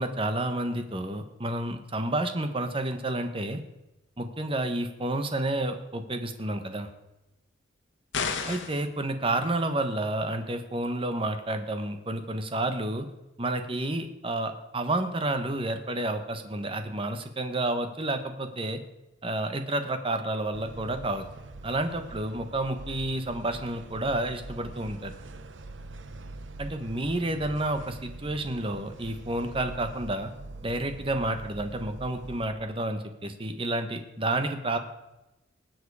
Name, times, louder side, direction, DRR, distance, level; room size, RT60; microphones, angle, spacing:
voice 1, 0.0-3.6 4.2-6.9 8.5-13.1 13.4-18.8 19.2-21.2 21.6-25.1 26.6-30.3 30.6-34.8, right 1 dB, 30° right, 7 dB, 1.3 m, -30 dB
sound 1, 8.1-8.9, left 5 dB, 80° left, 1.5 m, -31 dB
sound 2, 20.5-32.5, right 2 dB, 80° right, 1.0 m, -43 dB
20.0 x 7.9 x 4.9 m, 0.96 s
head